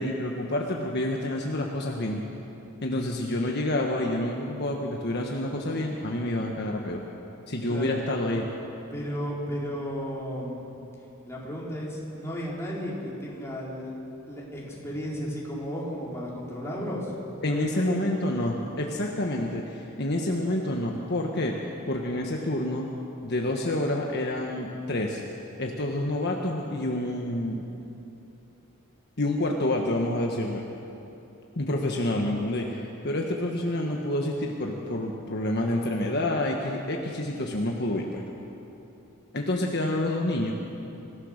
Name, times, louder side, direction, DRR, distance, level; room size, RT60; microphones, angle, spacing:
voice 1, 0.0-2.2 2.8-7.0 7.5-8.4 17.4-21.5 21.9-22.9 23.2-25.2 25.6-27.6 29.2-30.6 31.6-38.2 39.3-40.5, left 1 dB, 50° left, 0 dB, 1.4 m, -28 dB
voice 2, 8.9-10.7 11.2-13.9 14.3-17.1 17.4-18.1, equal, 15° left, -5 dB, 4.2 m, -34 dB
25.0 x 16.0 x 6.6 m, 2.9 s
head